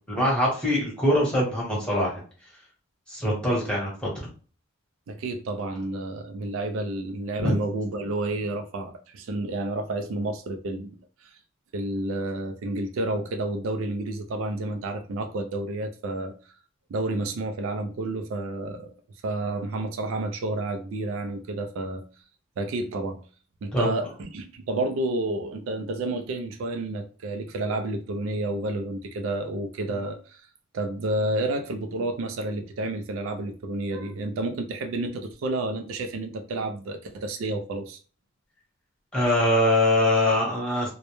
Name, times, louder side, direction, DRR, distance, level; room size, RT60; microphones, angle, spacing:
voice 1, 0.1-2.2 3.1-4.1 7.4-7.5 23.7-23.9 29.9-30.0 39.1-40.9, left 1 dB, 5° left, -5 dB, 1.0 m, -23 dB
voice 2, 5.1-10.9 11.2-11.4 11.7-16.3 16.9-18.9 19.2-22.0 22.6-23.2 23.6-30.4 30.7-38.0, right 2 dB, 70° right, 7 dB, 0.3 m, -30 dB
2.1 x 2.1 x 2.9 m, 0.39 s
head